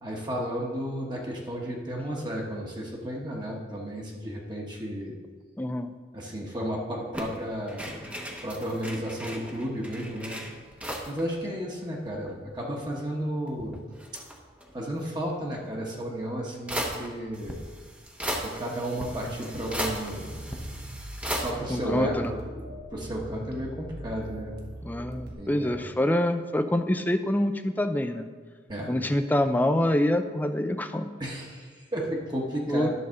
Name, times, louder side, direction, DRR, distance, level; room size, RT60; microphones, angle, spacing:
voice 1, 0.0-5.2 6.1-8.0 8.4-10.4 11.1-13.8 14.7-17.6 18.4-20.4 21.3-22.4 22.9-24.5 25.4-25.8 28.7-28.9 31.2-32.9, equal, 25° right, -2 dB, 1.1 m, -33 dB
voice 2, 5.6-5.9 21.7-22.3 24.8-28.3 28.9-31.1 32.7-32.9, left 1 dB, 10° left, 8 dB, 0.4 m, -26 dB
sound 1, 7.1-11.2 11.5-11.6 11.8-12.9 13.5-14.8 15.9-16.0 16.7-21.5, equal, 5° right, 0.9 m, -36 dB
sound 2, 19.5-25.3, right 1 dB, 60° right, 1.4 m, -41 dB
11.0 x 4.1 x 6.3 m, 1.5 s
head